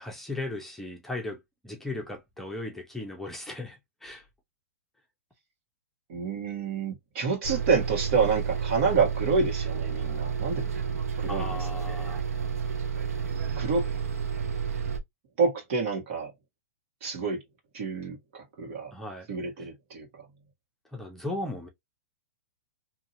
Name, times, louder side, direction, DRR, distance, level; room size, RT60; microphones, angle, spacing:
voice 1, 0.0-4.3 11.3-12.2 18.9-19.3 20.9-21.7, left 2 dB, 5° left, 0.7 m, -37 dB
voice 2, 6.1-10.7 11.2-11.6 11.8-11.9 13.6-13.9 15.4-16.3 17.0-17.4 17.7-18.9 19.3-20.2, right 5 dB, 55° right, 1.6 m, -28 dB
Bus, 7.4-15.0, right 6 dB, 75° right, 0.7 m, -31 dB
2.7 x 2.7 x 2.6 m
hypercardioid pair, 125°, 8 cm